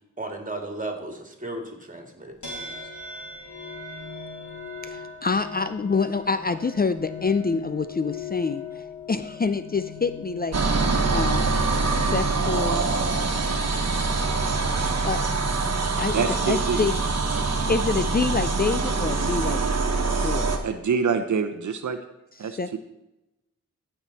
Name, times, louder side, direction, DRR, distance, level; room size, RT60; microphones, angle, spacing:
voice 1, 0.2-2.7, right 2 dB, 25° right, 4 dB, 2.4 m, -35 dB
sound 1, 2.4-15.9, left 5 dB, 80° left, 3.5 m, -40 dB
voice 2, 4.8-11.5 11.9-12.9 15.0-16.2 16.5-16.9 17.7-19.6 20.2-20.6 22.6-22.7, left 4 dB, 30° left, 12 dB, 0.5 m, -27 dB
sound 2, 10.5-20.6, right 3 dB, 60° right, 1.4 m, -24 dB
voice 3, 16.1-16.9 17.3-17.8 20.6-22.0 22.4-22.8, right 5 dB, 75° right, 8 dB, 0.8 m, -26 dB
15.0 x 5.8 x 4.2 m, 0.94 s
cardioid pair, 50°, 30 cm